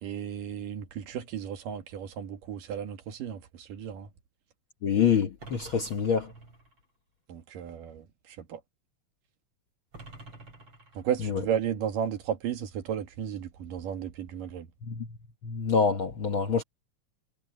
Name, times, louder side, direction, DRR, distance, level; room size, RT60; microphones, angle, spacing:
voice 1, 0.0-4.1 7.3-8.6 11.0-14.7, right 9 dB, 75° right, 3.4 m, -34 dB
voice 2, 4.8-6.3 11.3-11.4 14.9-15.1 15.4-16.6, left 6 dB, 55° left, 1.5 m, -26 dB
sound 1, 5.4-6.8 9.9-11.4, right 2 dB, 40° right, 5.2 m, -49 dB
omnidirectional pair, 3.8 m